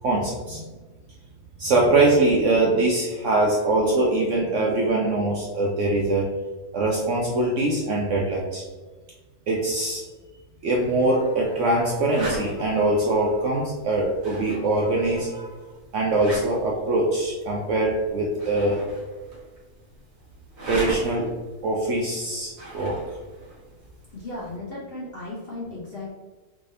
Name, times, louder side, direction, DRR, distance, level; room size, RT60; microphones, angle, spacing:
voice 1, 0.0-0.6 1.6-6.3 6.7-8.6 9.5-10.0 10.6-15.6 15.9-18.8 20.7-21.3 21.6-23.0, right 2 dB, 65° right, -3 dB, 0.7 m, -23 dB
sound 1, 10.8-24.6, right 1 dB, 45° right, 1.2 m, -40 dB
voice 2, 24.1-26.1, left 2 dB, 50° left, -6 dB, 0.7 m, -35 dB
3.6 x 3.3 x 2.5 m, 1.3 s
omnidirectional pair, 1.8 m